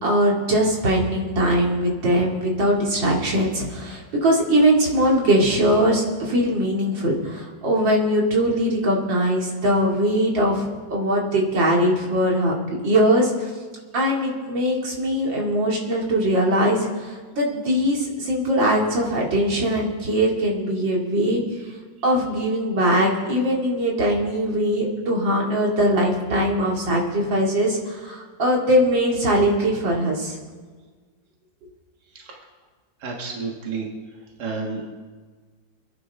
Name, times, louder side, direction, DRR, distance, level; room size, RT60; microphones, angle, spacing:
voice 1, 0.0-12.5 12.8-13.5 13.9-21.4 22.0-30.4, equal, 90° right, -2 dB, 3.3 m, -21 dB
voice 2, 33.0-33.9 34.4-34.9, right 4 dB, 65° right, 0 dB, 2.3 m, -30 dB
26.0 x 11.0 x 3.6 m, 1.5 s
omnidirectional pair, 2.0 m